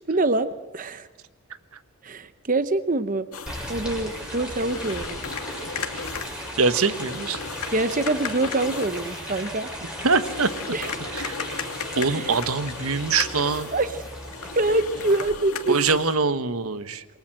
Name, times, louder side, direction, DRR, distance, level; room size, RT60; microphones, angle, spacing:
voice 1, 0.1-1.1 2.0-3.3 3.7-5.2 7.7-9.7 10.7-10.9 12.1-12.3 13.7-14.1 14.5-16.0, right 2 dB, 35° right, 12 dB, 0.8 m, -25 dB
sound 1, 3.3-16.2, left 5 dB, 85° left, 2.5 m, -36 dB
sound 2, 3.5-15.3, equal, 5° right, 6.3 m, -36 dB
voice 2, 6.6-7.4 10.0-10.5 11.1-11.4 12.0-13.7 15.7-17.0, right 4 dB, 75° right, 12 dB, 1.3 m, -23 dB
27.5 x 23.0 x 7.8 m, 1.1 s
head